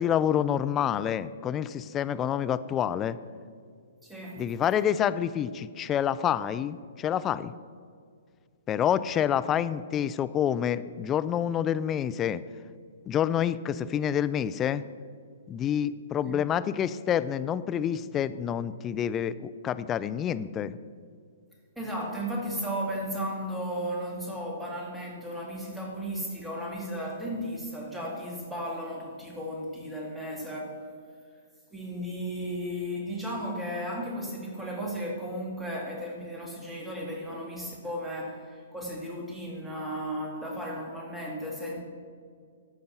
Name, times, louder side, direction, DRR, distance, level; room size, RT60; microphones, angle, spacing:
voice 1, 0.0-3.2 4.4-7.5 8.7-12.4 13.1-14.8 15.5-20.8, left 9 dB, 20° left, 14 dB, 0.3 m, -28 dB
voice 2, 4.0-4.4 16.2-16.4 21.8-30.8 31.7-41.8, equal, 5° right, -2 dB, 2.2 m, -35 dB
14.0 x 5.3 x 5.8 m, 2.1 s
figure-of-eight pair, 125°, 0 cm